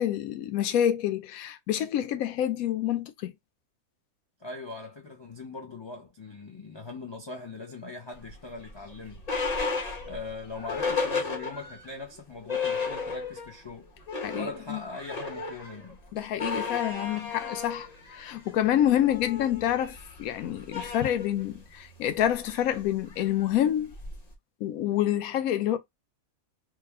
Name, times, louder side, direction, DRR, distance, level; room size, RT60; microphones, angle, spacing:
voice 1, 0.0-3.3 14.2-14.8 16.1-23.9 24.6-25.8, left 11 dB, 85° left, 1.0 m, -27 dB
voice 2, 4.4-9.2 10.1-13.9 14.3-16.0, left 3 dB, 45° left, 0.3 m, -41 dB
sound 1, 8.3-11.9 12.2-12.3 12.5-13.6 13.9-24.3, left 4 dB, 30° left, 1.1 m, -34 dB
3.2 x 2.3 x 3.4 m
omnidirectional pair, 1.5 m